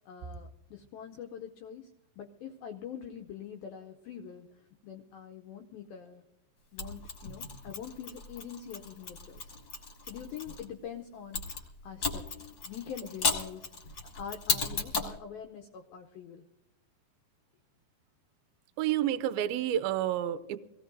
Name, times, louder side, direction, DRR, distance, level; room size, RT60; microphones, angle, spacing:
voice 1, 0.1-1.9 2.2-4.5 4.8-6.3 6.7-9.6 10.0-12.2 12.7-16.4, left 8 dB, 85° left, 4 dB, 2.1 m, -44 dB
Mechanisms, 6.8-10.6 11.3-15.2, left 4 dB, 40° left, 1.8 m, -35 dB
voice 2, 18.8-20.6, right 11 dB, 85° right, 12 dB, 2.1 m, -29 dB
24.5 x 17.0 x 2.6 m, 0.94 s
omnidirectional pair, 5.1 m